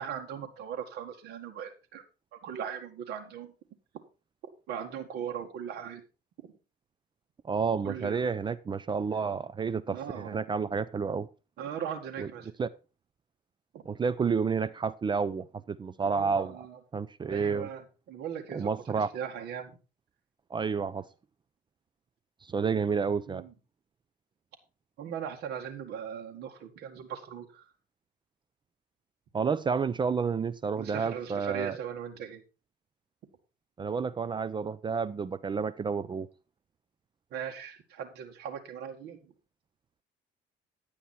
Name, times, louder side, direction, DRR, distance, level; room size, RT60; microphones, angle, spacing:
voice 1, 0.0-2.0 2.3-3.5 4.7-6.0 6.4-6.5 7.8-8.3 9.9-10.4 11.6-12.5 13.7-13.8 16.0-16.8 17.3-19.8 23.3-23.5 25.0-27.7 30.8-32.4 37.3-39.2, right 8 dB, 75° right, 1.9 m, -39 dB
voice 2, 7.5-11.3 12.2-12.3 12.6-12.7 13.9-16.6 16.9-17.7 18.5-19.1 20.5-21.1 22.4-23.4 29.3-31.7 33.8-36.3, right 5 dB, 25° right, 0.6 m, -30 dB
11.0 x 8.6 x 4.3 m
cardioid pair, 110°, 17 cm